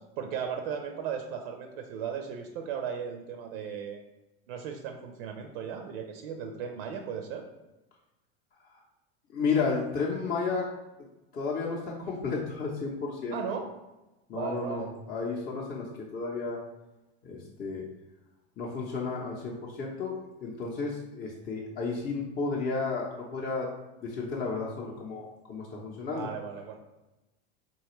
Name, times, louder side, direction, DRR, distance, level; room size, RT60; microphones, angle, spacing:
voice 1, 0.2-4.0 4.5-7.4 13.3-13.7 14.3-14.9 26.1-26.8, right 7 dB, 65° right, 5 dB, 0.5 m, -36 dB
voice 2, 9.3-10.6 11.3-13.4 14.3-15.9 16.1-16.6 17.2-17.8 18.6-23.7 24.0-26.3, left 4 dB, 30° left, -3 dB, 0.6 m, -32 dB
4.1 x 2.3 x 3.0 m, 1.0 s
hypercardioid pair, 90°, 31 cm